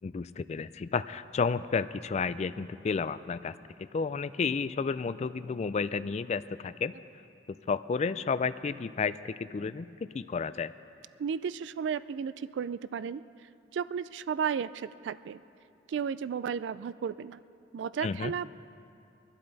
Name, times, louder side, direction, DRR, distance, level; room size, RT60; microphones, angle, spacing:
voice 1, 0.0-3.5 3.9-6.9 7.7-9.9 10.1-10.7 18.0-18.3, left 5 dB, 35° left, 14 dB, 0.3 m, -31 dB
voice 2, 11.2-15.4 15.9-17.4 17.7-18.5, right 7 dB, 70° right, 16 dB, 0.3 m, -34 dB
23.5 x 12.0 x 4.0 m, 2.7 s
head